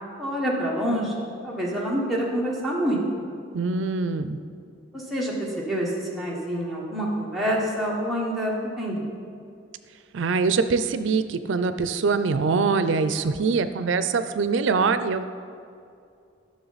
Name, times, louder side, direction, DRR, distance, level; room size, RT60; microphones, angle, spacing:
voice 1, 0.2-1.1 1.4-3.0 4.9-9.1, equal, ahead, -5 dB, 1.2 m, -27 dB
voice 2, 3.5-4.4 10.1-15.2, right 4 dB, 80° right, 11 dB, 0.4 m, -23 dB
10.0 x 6.4 x 4.0 m, 2.4 s
head